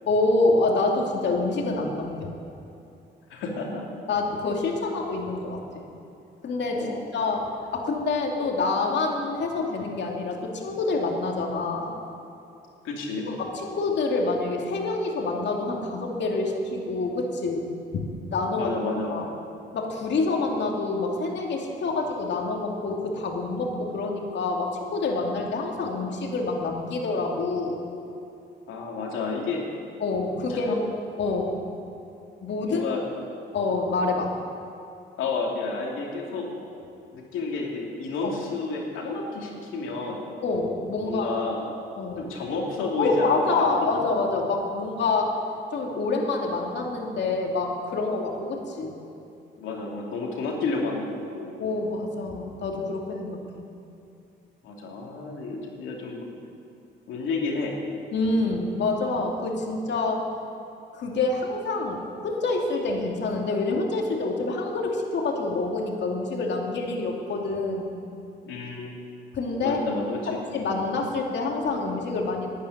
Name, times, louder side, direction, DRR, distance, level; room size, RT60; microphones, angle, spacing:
voice 1, 0.1-2.3 4.1-5.8 6.4-11.9 13.3-17.6 18.3-18.7 19.1-19.3 19.7-27.8 30.0-30.8 31.2-31.6 32.4-33.0 33.5-34.3 38.2-38.3 40.4-41.3 42.0-42.3 43.0-45.3 45.7-48.9 51.6-53.6 58.1-60.3 60.9-68.0 69.3-69.8 70.3-72.5, left 3 dB, 65° left, 1 dB, 2.5 m, -27 dB
voice 2, 3.3-3.9 6.7-7.0 12.8-13.3 18.5-19.2 28.7-29.6 30.5-30.7 32.7-33.0 35.2-36.5 37.1-40.2 41.0-41.6 42.2-43.5 43.8-43.9 49.6-51.6 54.6-56.2 57.1-57.8 68.4-69.1 69.6-70.4, left 3 dB, 90° left, -1 dB, 2.8 m, -31 dB
12.0 x 10.0 x 9.6 m, 2.7 s
cardioid pair, 90°, 20 cm